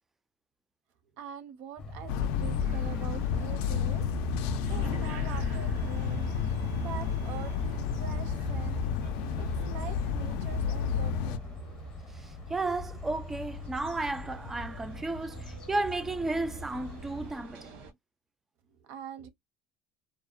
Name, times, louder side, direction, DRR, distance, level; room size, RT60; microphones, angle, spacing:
voice 1, 1.1-4.4 4.7-6.3 6.8-8.9 9.4-11.8 18.7-19.3, right 8 dB, 65° right, 0.6 m, -44 dB
sound 1, 1.8-17.3, left 2 dB, 30° left, 0.6 m, -43 dB
sound 2, 2.1-11.4, left 6 dB, 75° left, 0.3 m, -31 dB
sound 3, 2.6-17.9, right 4 dB, 85° right, 1.0 m, -51 dB
voice 2, 12.1-17.7, right 2 dB, 10° right, 0.3 m, -33 dB
2.7 x 2.0 x 2.3 m
cardioid pair, 155°, 3 cm